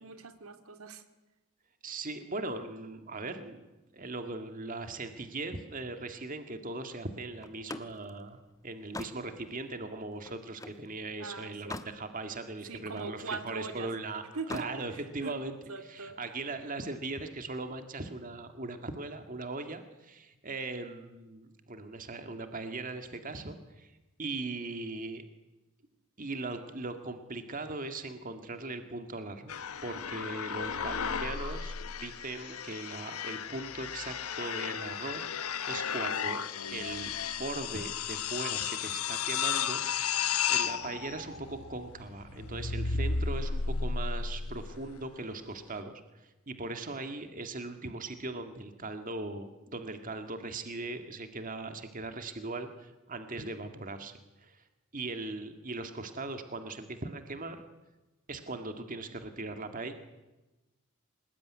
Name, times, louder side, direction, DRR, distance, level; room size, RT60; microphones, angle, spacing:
voice 1, 0.0-1.0 11.2-11.7 12.6-13.9 14.3-15.4 15.7-16.2, right 3 dB, 80° right, 8 dB, 2.3 m, -41 dB
voice 2, 1.8-3.7 3.9-14.2 14.5-15.6 15.9-23.9 24.2-25.2 26.2-29.5 29.8-36.5 36.7-40.2 40.5-54.6 54.9-57.6 58.3-59.9, right 2 dB, 40° right, 7 dB, 1.9 m, -39 dB
Slam, 7.4-10.9 11.3-12.0 12.4-13.5 14.3-14.8, left 2 dB, 15° left, 1.3 m, -44 dB
sound 1, 29.5-45.0, left 6 dB, 85° left, 1.2 m, -34 dB
27.0 x 19.5 x 9.6 m, 1.1 s
head